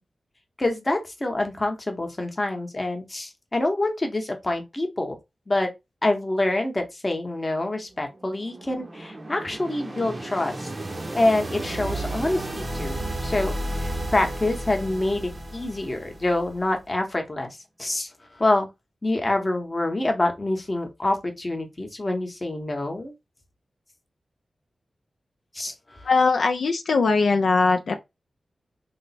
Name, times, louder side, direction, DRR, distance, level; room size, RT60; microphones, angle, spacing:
voice 1, 0.6-5.2 5.5-5.7 6.0-10.7 11.1-17.5 17.8-18.7 19.0-23.1 25.5-26.3, left 2 dB, 25° left, 0.9 m, -26 dB
sound 1, 7.9-16.8, right 1 dB, 30° right, 0.6 m, -33 dB
voice 2, 26.1-27.9, left 4 dB, 80° left, 0.4 m, -20 dB
3.2 x 2.0 x 4.1 m
wide cardioid pair, 115°, 0 cm